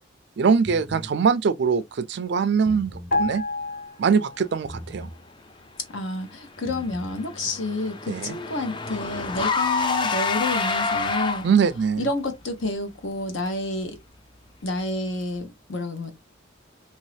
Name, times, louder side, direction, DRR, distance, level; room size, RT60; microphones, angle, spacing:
voice 1, 0.4-3.4 4.0-5.1 8.1-8.4 11.4-12.0, right 6 dB, 60° right, 0.4 m, -22 dB
sound 1, 0.6-1.1 2.5-3.2 4.6-5.2 6.5-7.2, equal, ahead, 0.7 m, -39 dB
sound 2, 3.1-4.7 5.0-5.2, left 2 dB, 50° left, 1.0 m, -29 dB
voice 2, 5.9-11.5 12.0-14.0 14.6-16.1, left 2 dB, 70° left, 1.0 m, -29 dB
Car / Engine, 6.7-11.7, left 4 dB, 25° left, 0.3 m, -27 dB
2.9 x 2.7 x 3.2 m
head